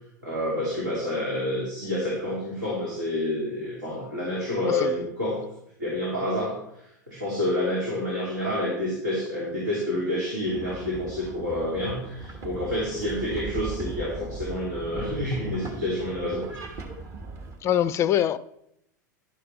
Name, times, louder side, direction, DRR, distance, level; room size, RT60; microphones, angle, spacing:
voice 1, 0.2-5.4 5.8-16.8, left 1 dB, 75° right, 3.2 m, -28 dB
voice 2, 4.6-5.0 17.6-18.4, left 11 dB, 30° left, 0.4 m, -24 dB
sound 1, 10.5-17.6, right 3 dB, 30° right, 1.4 m, -38 dB
11.0 x 6.7 x 4.2 m
figure-of-eight pair, 85°, 10 cm